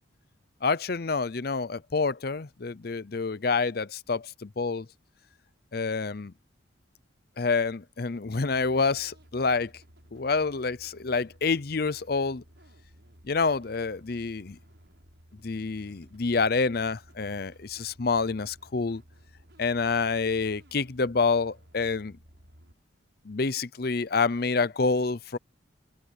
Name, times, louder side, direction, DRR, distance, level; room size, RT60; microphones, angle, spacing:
voice 1, 0.6-4.9 5.7-6.3 7.4-9.7 10.1-12.4 13.2-14.6 15.4-19.0 19.6-22.2 23.2-25.4, left 4 dB, 50° left, 0.6 m, -27 dB
sound 1, 8.2-22.7, equal, 60° right, 6.7 m, -56 dB
head